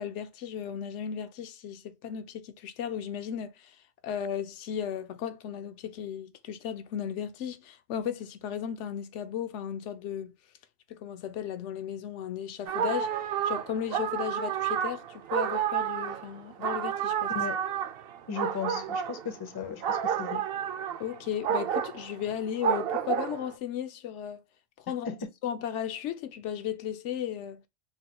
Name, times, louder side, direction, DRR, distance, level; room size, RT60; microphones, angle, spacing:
voice 1, 0.0-3.8 4.0-10.3 10.9-13.1 13.4-17.3 21.0-24.4 24.8-25.2 25.4-27.7, left 9 dB, 85° left, 0.9 m, -35 dB
sound 1, 12.7-23.5, right 9 dB, 65° right, 0.7 m, -30 dB
voice 2, 18.3-20.5 25.1-25.2, left 6 dB, 35° left, 0.4 m, -36 dB
3.8 x 2.2 x 2.8 m
omnidirectional pair, 1.2 m